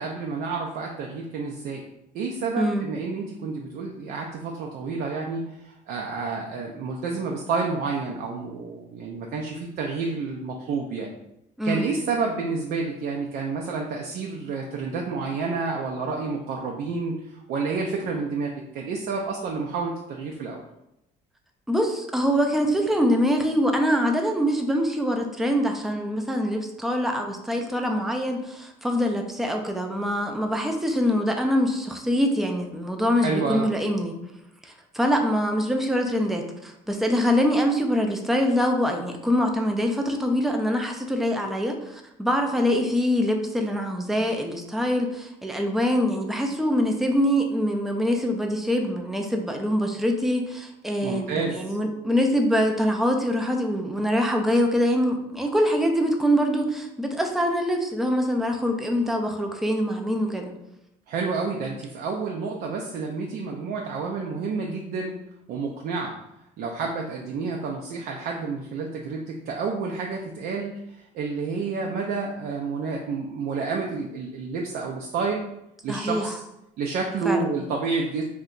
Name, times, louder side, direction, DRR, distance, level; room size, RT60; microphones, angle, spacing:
voice 1, 0.0-1.8 2.1-11.1 11.6-20.6 33.2-33.7 51.0-51.8 61.1-65.1 65.5-66.1 66.6-75.4 75.8-76.3 76.8-78.2, right 4 dB, 65° right, 0 dB, 0.4 m, -29 dB
voice 2, 2.6-2.9 11.6-11.9 21.7-34.2 34.6-60.5 75.9-76.3 77.2-77.5, equal, ahead, 3 dB, 0.4 m, -24 dB
2.7 x 2.2 x 3.8 m, 0.85 s
cardioid pair, 110°, 17 cm